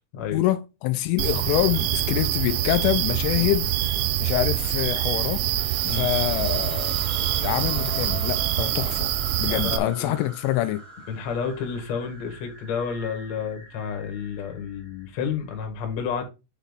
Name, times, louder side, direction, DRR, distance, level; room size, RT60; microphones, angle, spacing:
voice 1, 0.3-5.4 5.9-7.0 7.4-9.1 9.4-10.8, left 14 dB, 85° left, 3.0 m, -26 dB
sound 1, 1.2-9.8, right 13 dB, 80° right, 3.1 m, -25 dB
sound 2, 5.0-15.6, left 1 dB, 20° right, 1.5 m, -42 dB
voice 2, 9.4-10.1 11.1-16.2, left 6 dB, 55° left, 2.0 m, -30 dB
9.2 x 4.2 x 4.0 m
omnidirectional pair, 5.7 m